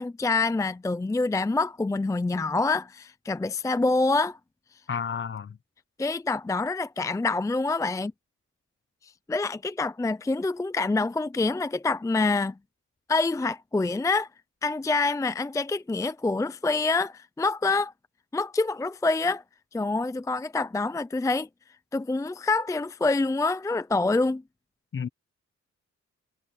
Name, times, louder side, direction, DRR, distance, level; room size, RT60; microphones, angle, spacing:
voice 1, 0.0-4.4 6.0-8.1 9.3-12.5 13.1-14.3 14.6-17.9 18.3-19.4 19.7-21.5 21.9-24.4, left 3 dB, 10° left, 0.5 m, -26 dB
voice 2, 4.9-5.6 24.9-25.1, left 6 dB, 40° left, 1.0 m, -31 dB
cardioid pair, 100°, 29 cm